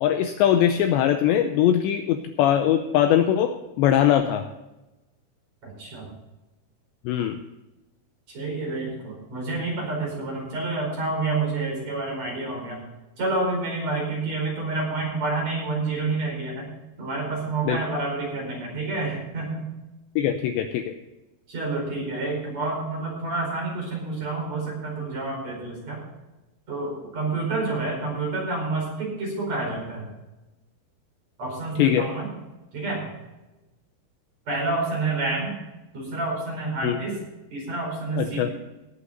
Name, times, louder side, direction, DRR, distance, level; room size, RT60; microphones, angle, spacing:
voice 1, 0.0-4.5 7.1-7.4 17.6-17.8 20.2-20.9 31.8-32.1 36.8-37.0 38.2-38.5, left 10 dB, 85° left, 7 dB, 2.5 m, -21 dB
voice 2, 5.6-6.1 8.3-12.8 13.2-16.7 17.0-19.7 21.5-26.0 26.7-30.1 31.4-32.3 32.7-33.1 34.5-35.5 35.9-37.2 37.5-38.5, right 3 dB, 35° right, -1 dB, 5.5 m, -28 dB
19.0 x 8.5 x 4.0 m, 1.0 s
omnidirectional pair, 5.8 m